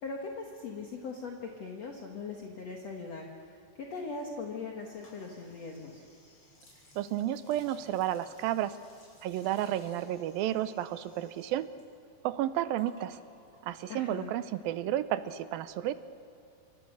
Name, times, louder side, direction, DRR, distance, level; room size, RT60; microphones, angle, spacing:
voice 1, 0.0-3.3 3.8-6.0 13.9-14.3, left 4 dB, 55° left, 1 dB, 2.5 m, -40 dB
sound 1, 4.9-11.8 12.1-14.5, left 1 dB, 35° left, 7.7 m, -60 dB
voice 2, 7.0-8.8 9.2-11.7 12.2-13.2 13.6-15.9, right 12 dB, 85° right, 12 dB, 2.7 m, -32 dB
27.5 x 26.0 x 6.5 m, 2.7 s
omnidirectional pair, 4.1 m